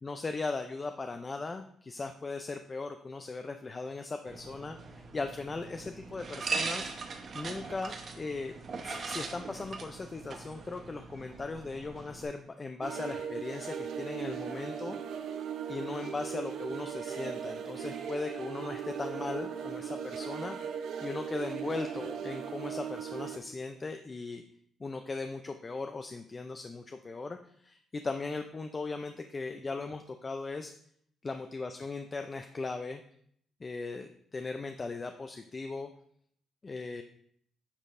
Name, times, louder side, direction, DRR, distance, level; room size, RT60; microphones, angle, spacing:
voice 1, 0.0-6.9 7.3-8.5 8.8-15.0 15.7-20.6 21.0-24.4 24.8-30.7 31.2-33.0 33.6-35.9 36.6-37.0, left 3 dB, 30° left, 6 dB, 0.4 m, -38 dB
sound 1, 4.3-12.2, right 4 dB, 50° right, 0.9 m, -40 dB
sound 2, 12.8-23.4, right 8 dB, 75° right, 0.6 m, -38 dB
9.6 x 5.2 x 2.6 m, 0.66 s
cardioid pair, 90°, 0 cm